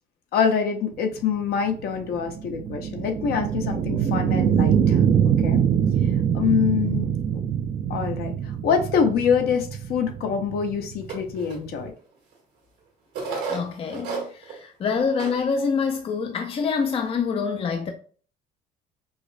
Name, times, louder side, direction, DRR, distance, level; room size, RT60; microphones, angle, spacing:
voice 1, 0.3-5.0 5.4-5.6 6.3-7.1 7.9-8.3 8.6-11.9, left 7 dB, 65° left, 0.7 m, -25 dB
sound 1, 1.2-11.9, right 8 dB, 45° right, 0.4 m, -24 dB
sound 2, 11.1-11.6 12.3-12.4 13.1-14.6 14.9-15.0 15.2-15.4 15.9-16.0 16.6-17.0, right 5 dB, 80° right, 1.5 m, -31 dB
voice 2, 13.5-17.9, left 5 dB, 35° left, 0.5 m, -26 dB
4.9 x 2.0 x 2.5 m
cardioid pair, 110°, 17 cm